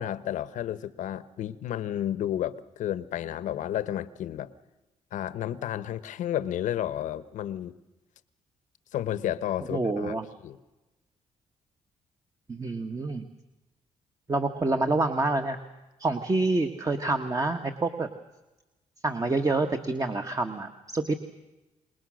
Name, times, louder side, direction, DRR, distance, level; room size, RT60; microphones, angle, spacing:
voice 1, 0.0-4.5 5.1-7.7 8.9-10.2 10.4-10.6, left 11 dB, 85° left, 16 dB, 1.1 m, -31 dB
voice 2, 9.7-10.2 12.5-13.2 14.3-15.6 16.0-18.1 19.0-21.2, right 2 dB, 25° right, 6 dB, 1.5 m, -27 dB
27.0 x 21.0 x 6.4 m, 1.0 s
cardioid pair, 80°, 13 cm